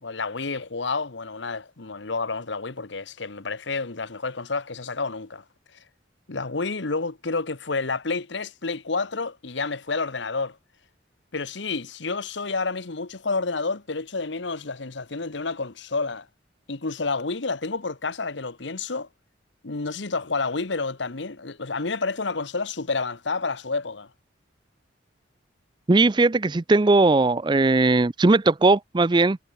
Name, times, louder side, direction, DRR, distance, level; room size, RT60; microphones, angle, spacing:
voice 1, 0.0-5.4 6.3-10.6 11.3-16.3 16.7-19.1 19.6-24.1, left 4 dB, 75° left, 1.2 m, -29 dB
voice 2, 25.9-29.4, right 3 dB, 25° right, 0.5 m, -19 dB
head